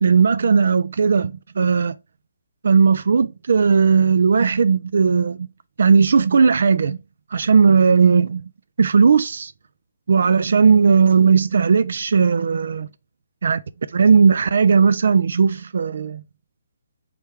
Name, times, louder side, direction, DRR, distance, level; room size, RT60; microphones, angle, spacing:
voice 1, 0.0-1.9 2.6-5.5 5.8-7.0 7.3-8.5 8.8-9.5 10.1-12.9 13.4-13.6 13.9-16.2, right 5 dB, 65° right, 0.3 m, -16 dB
3.3 x 3.3 x 4.7 m
hypercardioid pair, 155°, 0 cm